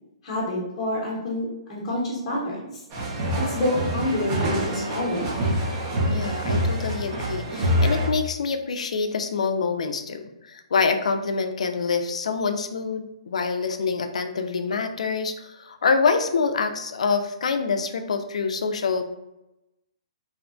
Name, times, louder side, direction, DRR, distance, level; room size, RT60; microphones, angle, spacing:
voice 1, 0.2-2.7 3.4-5.3, left 1 dB, 20° left, -7 dB, 0.8 m, -27 dB
sound 1, 2.9-8.1, equal, 20° right, 0.4 m, -26 dB
voice 2, 6.1-19.0, left 5 dB, 90° left, 7 dB, 0.3 m, -26 dB
2.7 x 2.1 x 2.5 m, 0.93 s
hypercardioid pair, 175°, 3 cm